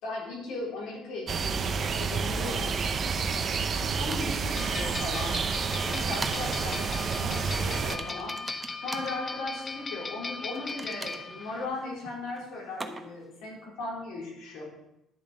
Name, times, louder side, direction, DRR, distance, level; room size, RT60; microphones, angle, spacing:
voice 1, 0.0-2.8 3.5-5.4 5.8-8.3 8.8-14.6, left 2 dB, 80° left, -4 dB, 4.4 m, -37 dB
sound 1, 1.3-8.0, right 5 dB, 45° right, 0.9 m, -29 dB
sound 2, 3.3-3.7 4.1-4.3 5.4-5.5 6.0-6.5 6.8-7.1 7.7-9.1 10.5-13.3, right 3 dB, 20° right, 1.1 m, -41 dB
sound 3, 4.5-11.6, left 3 dB, 30° left, 0.9 m, -38 dB
11.0 x 7.3 x 5.2 m, 0.88 s
supercardioid pair, 85°, 0 cm